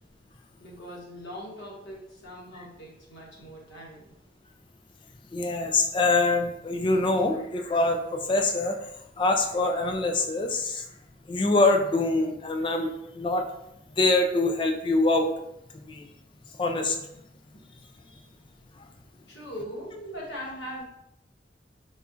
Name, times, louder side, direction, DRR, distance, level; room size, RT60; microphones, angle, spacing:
voice 1, 0.6-4.1 19.3-20.8, equal, 75° left, -4 dB, 1.1 m, -40 dB
voice 2, 5.3-8.8 9.2-10.8 11.3-12.9 13.1-13.4 14.0-15.3 15.9-16.0 16.6-17.0, left 2 dB, 25° left, 4 dB, 0.3 m, -24 dB
4.2 x 2.4 x 2.5 m, 0.81 s
head